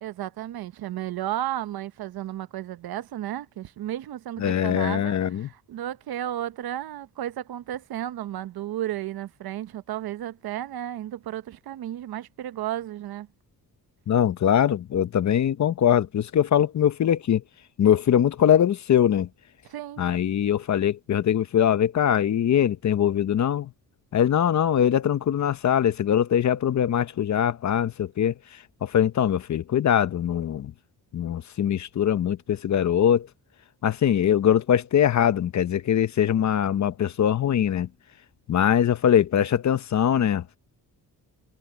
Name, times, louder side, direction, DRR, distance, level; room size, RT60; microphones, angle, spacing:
voice 1, 0.0-13.3 19.7-20.0, right 12 dB, 75° right, 1.0 m, -33 dB
voice 2, 4.4-5.5 14.1-17.4 17.8-19.3 20.0-23.7 24.1-28.3 28.8-30.7 31.1-33.3 33.8-37.9 38.5-40.4, left 9 dB, 50° left, 0.9 m, -22 dB
cardioid pair, 130°, 37 cm